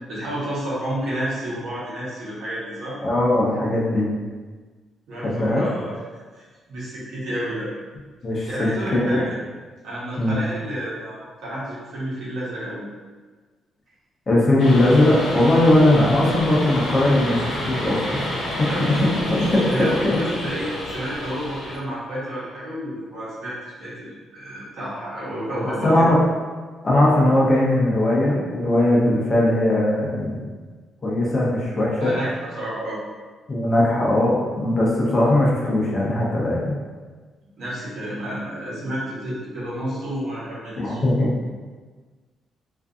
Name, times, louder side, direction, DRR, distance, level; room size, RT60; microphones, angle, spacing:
voice 1, 0.1-3.0 5.1-6.0 6.3-7.7 8.3-9.2 9.8-12.8 18.6-19.2 19.7-26.1 32.0-33.0 37.6-41.0, equal, 70° right, -8 dB, 1.0 m, -30 dB
voice 2, 3.0-4.1 5.2-5.6 8.2-9.2 10.2-10.3 14.3-18.7 19.5-20.1 25.7-26.2 26.8-30.4 31.0-32.1 33.5-36.8 40.8-41.3, left 1 dB, 30° left, -5 dB, 0.6 m, -19 dB
sound 1, 14.6-21.8, left 1 dB, 85° left, 0.6 m, -29 dB
2.5 x 2.5 x 2.3 m, 1.4 s
cardioid pair, 135°, 0 cm